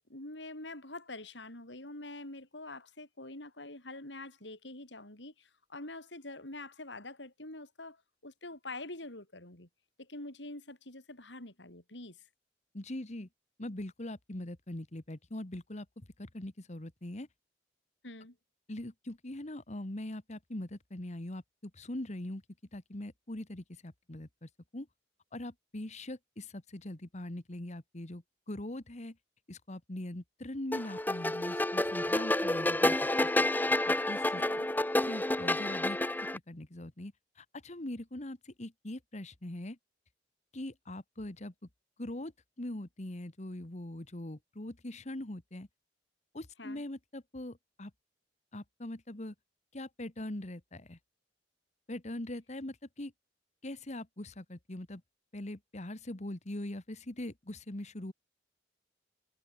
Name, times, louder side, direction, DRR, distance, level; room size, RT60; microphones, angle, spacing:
voice 1, 0.1-9.7 10.0-12.2 18.0-18.4 34.4-34.7 46.6-46.8, left 2 dB, 90° left, 7.4 m, -45 dB
voice 2, 12.7-13.3 13.6-17.3 18.7-22.4 22.7-24.9 25.3-29.2 29.5-32.9 33.2-33.8 34.1-34.4 35.0-36.0 36.3-39.8 40.5-41.5 42.0-42.3 42.6-45.7 46.3-47.9 48.5-49.3 49.7-51.0 51.9-53.1 53.6-55.0 55.3-58.1, left 1 dB, 40° left, 1.6 m, -42 dB
sound 1, 30.7-36.4, left 1 dB, 10° left, 0.9 m, -29 dB
head